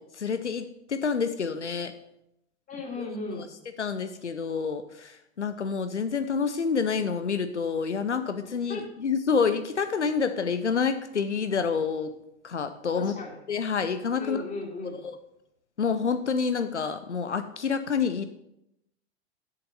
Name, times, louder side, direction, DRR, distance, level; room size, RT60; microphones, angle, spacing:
voice 1, 0.0-1.9 3.3-3.5 3.8-12.1 12.4-13.2 13.5-14.4 14.9-15.1 15.8-18.2, left 5 dB, 90° left, 9 dB, 0.6 m, -28 dB
voice 2, 2.7-3.5 8.4-8.8 12.9-13.4 14.2-15.0, left 2 dB, 25° left, 0 dB, 2.5 m, -36 dB
8.0 x 6.8 x 5.3 m, 0.81 s
figure-of-eight pair, 100°, 34 cm